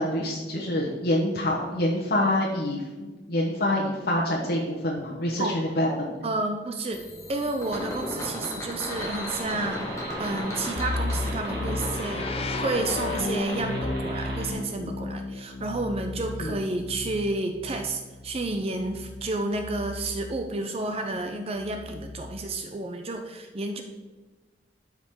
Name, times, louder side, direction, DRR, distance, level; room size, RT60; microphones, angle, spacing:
voice 1, 0.0-6.1 16.4-16.6, left 1 dB, 60° left, -3 dB, 1.2 m, -26 dB
voice 2, 6.2-23.8, right 2 dB, 35° right, 6 dB, 0.5 m, -31 dB
sound 1, 6.9-13.9, left 1 dB, 20° left, 1.5 m, -35 dB
sound 2, 9.0-14.5, right 1 dB, 60° right, 1.7 m, -40 dB
sound 3, 10.8-20.6 21.6-22.6, left 2 dB, 35° left, 0.4 m, -34 dB
12.0 x 4.9 x 3.7 m, 1.2 s
head